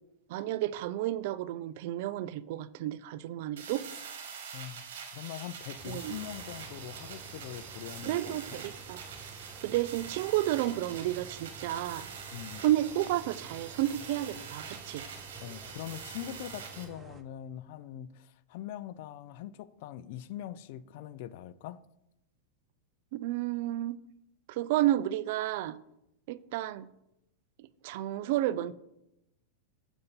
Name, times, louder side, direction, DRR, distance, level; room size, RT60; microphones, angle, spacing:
voice 1, 0.3-3.8 5.9-6.1 8.0-9.0 9.6-12.1 12.6-15.0 23.1-24.0 24.5-25.8 26.3-26.9 27.6-28.7, right 14 dB, 60° right, 0.3 m, -31 dB
sound 1, 3.6-16.8, right 6 dB, 75° right, 1.5 m, -45 dB
voice 2, 4.5-8.6 12.3-12.6 15.4-21.8, left 12 dB, 60° left, 0.4 m, -42 dB
sound 2, 5.8-17.2, right 5 dB, 25° right, 0.6 m, -50 dB
6.9 x 4.1 x 5.3 m
supercardioid pair, 130°, 0 cm